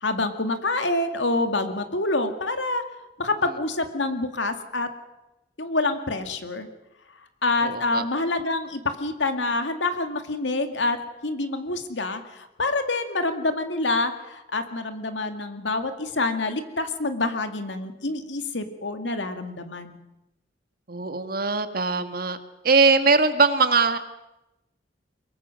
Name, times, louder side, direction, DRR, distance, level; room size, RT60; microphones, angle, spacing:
voice 1, 0.0-2.8 3.2-4.9 5.6-6.7 7.4-11.0 11.2-20.0, left 2 dB, 85° left, 7 dB, 2.2 m, -27 dB
voice 2, 7.6-8.0 20.9-22.4 22.6-24.0, right 4 dB, 55° right, 9 dB, 1.6 m, -21 dB
24.0 x 22.5 x 6.4 m, 0.96 s
head